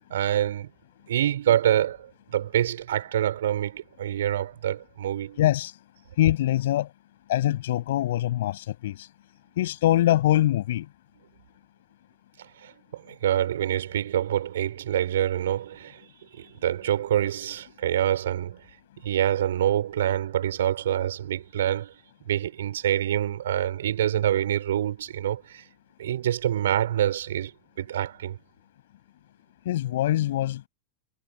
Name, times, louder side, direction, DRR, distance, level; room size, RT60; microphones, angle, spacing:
voice 1, 0.1-0.7 1.1-5.4 12.4-18.6 19.0-21.9 22.3-25.6 26.0-27.5 27.8-28.4, right 11 dB, 60° right, 5.5 m, -26 dB
voice 2, 5.4-5.8 6.2-6.9 7.3-9.1 9.6-10.9 29.6-30.6, left 13 dB, 55° left, 6.0 m, -23 dB
figure-of-eight pair, 90°, 0 cm